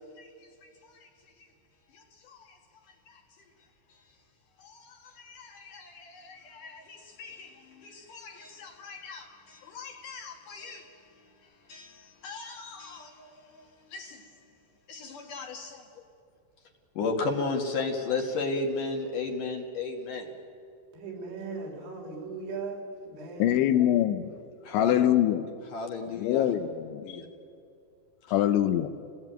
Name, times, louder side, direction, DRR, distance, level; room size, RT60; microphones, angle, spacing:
voice 1, 1.9-2.6 3.1-3.2 4.6-11.0 11.7-13.4 13.9-14.3 14.9-15.8 17.0-20.3 24.6-25.1 25.7-26.5 27.0-27.3, left 3 dB, 55° left, 2.6 m, -35 dB
voice 2, 20.9-23.8, right 4 dB, 70° right, 6.4 m, -38 dB
voice 3, 23.4-24.3 24.7-25.5 26.2-27.2 28.3-28.9, left 12 dB, 80° left, 3.0 m, -24 dB
28.5 x 19.5 x 9.0 m
omnidirectional pair, 5.5 m